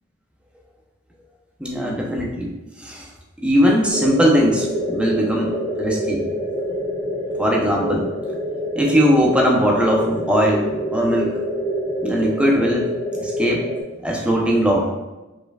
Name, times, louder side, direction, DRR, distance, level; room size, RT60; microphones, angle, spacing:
voice 1, 1.6-2.5 2.8-3.1 3.4-6.2 7.4-8.1 8.8-11.3 12.0-12.9 13.2-13.7 14.0-14.9, equal, 5° right, -2 dB, 0.6 m, -19 dB
sound 1, 3.9-13.8, equal, 25° left, 1.4 m, -26 dB
5.0 x 4.4 x 2.3 m, 1.1 s
head